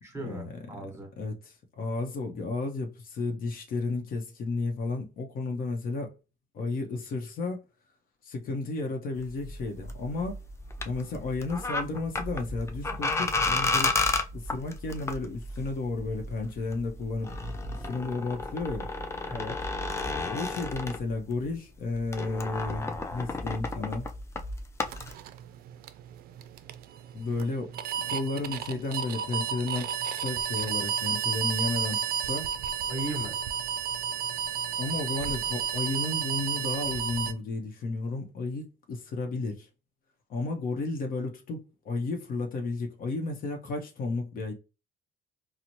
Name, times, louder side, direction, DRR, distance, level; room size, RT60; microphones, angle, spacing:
voice 1, 0.0-1.1 19.3-19.7 32.9-33.3, equal, 15° right, 1.2 m, -37 dB
voice 2, 1.8-6.1 6.5-7.6 8.2-10.4 10.8-13.9 14.3-17.3 17.8-18.9 20.3-24.1 27.1-27.7 28.0-32.5 34.8-39.7 40.3-44.5, left 3 dB, 55° left, 0.8 m, -33 dB
sound 1, 9.2-21.5 21.8-25.1, left 3 dB, 15° left, 0.4 m, -33 dB
sound 2, 24.9-37.3, right 8 dB, 65° right, 0.4 m, -32 dB
4.0 x 2.0 x 2.9 m
cardioid pair, 110°, 17 cm